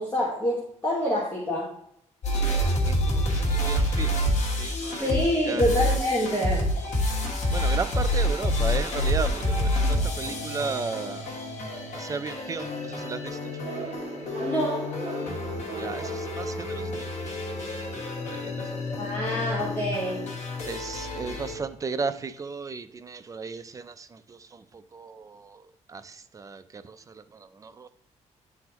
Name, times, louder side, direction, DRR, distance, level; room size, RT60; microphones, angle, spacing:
voice 1, 0.0-1.7 5.0-6.7 14.4-14.9 19.0-20.2, equal, 15° left, -6 dB, 1.5 m, -26 dB
sound 1, 2.2-21.6, left 1 dB, 65° left, 1.4 m, -28 dB
voice 2, 2.9-4.2 4.6-5.1 5.5-5.6 7.5-11.2 11.9-13.4 15.6-17.1 18.2-18.5 20.6-24.6 24.9-25.6 25.9-27.0 27.6-27.9, right 5 dB, 25° right, 11 dB, 0.4 m, -34 dB
sound 2, 13.6-17.1, right 5 dB, 45° right, 1.6 m, -39 dB
10.0 x 3.9 x 2.9 m, 0.76 s
cardioid pair, 135°, 12 cm